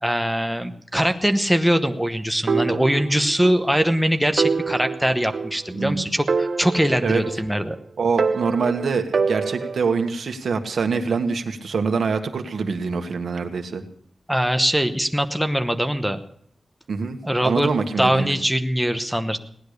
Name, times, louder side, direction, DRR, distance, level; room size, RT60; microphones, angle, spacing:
voice 1, 0.0-7.8 14.3-16.2 17.2-17.7 18.0-19.4, equal, ahead, 6 dB, 1.0 m, -22 dB
sound 1, 2.5-3.6 3.9-4.0 4.4-5.9 6.3-7.7 8.2-10.0, right 4 dB, 55° right, 0.7 m, -26 dB
voice 2, 5.7-6.1 7.0-7.2 8.0-13.8 16.9-18.4, right 5 dB, 80° right, 6 dB, 1.6 m, -24 dB
18.0 x 10.5 x 6.7 m, 0.67 s
wide cardioid pair, 175°, 0 cm